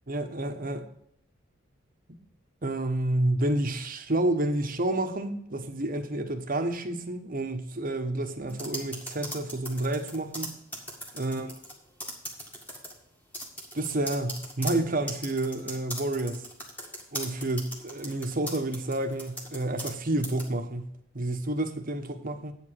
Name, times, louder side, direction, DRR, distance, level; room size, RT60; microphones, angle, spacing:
voice 1, 0.1-0.9 2.6-10.5 11.1-11.5 13.7-16.4 17.1-20.9 21.1-22.5, right 1 dB, 40° right, 5 dB, 1.1 m, -29 dB
sound 1, 8.5-11.7 12.0-12.9 13.3-20.0 20.2-20.5, equal, 10° left, 1.9 m, -38 dB
9.0 x 5.0 x 7.5 m, 0.71 s
head